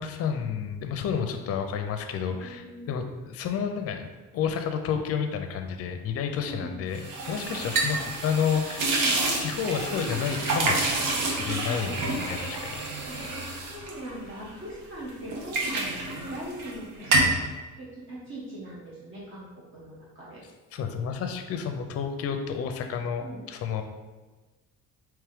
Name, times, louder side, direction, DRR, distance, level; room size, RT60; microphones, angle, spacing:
voice 1, 0.0-10.9 11.2-13.2 20.7-23.8, left 7 dB, 50° left, 6 dB, 0.5 m, -31 dB
voice 2, 2.2-2.9 6.3-6.9 7.9-8.0 11.4-12.1 13.1-13.2 13.5-17.3 17.8-20.4 23.2-23.4, right 1 dB, 40° right, -8 dB, 1.4 m, -41 dB
sound 1, 6.9-14.7 15.1-16.8 17.0-17.4, right 2 dB, 75° right, 1.0 m, -28 dB
4.6 x 3.1 x 3.5 m, 1.3 s
cardioid pair, 140°, 32 cm